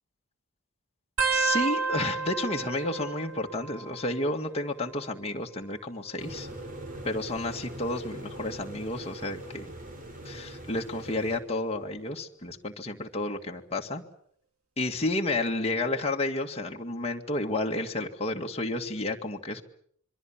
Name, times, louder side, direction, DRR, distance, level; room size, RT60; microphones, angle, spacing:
sound 1, 1.2-4.4 4.6-5.2 6.2-7.7 8.3-8.7 9.9-10.2 11.7-11.8, right 5 dB, 75° right, 2.4 m, -33 dB
voice 1, 1.3-6.5 7.0-9.7 10.3-14.0 14.8-19.6, left 2 dB, 30° left, 1 dB, 2.0 m, -31 dB
sound 2, 6.2-11.4, right 1 dB, 40° right, 4.6 m, -42 dB
26.5 x 23.0 x 7.4 m, 0.65 s
head